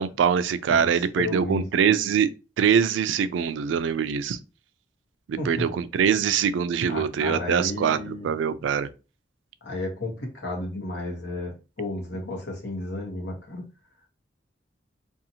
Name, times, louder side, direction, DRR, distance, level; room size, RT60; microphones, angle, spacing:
voice 1, 0.0-2.3 2.6-4.4 5.3-8.9, right 7 dB, 90° right, 0.3 m, -23 dB
voice 2, 1.2-1.6 5.4-5.5 6.9-8.3 9.6-13.6, left 2 dB, 70° left, 1.0 m, -32 dB
2.6 x 2.4 x 2.7 m
head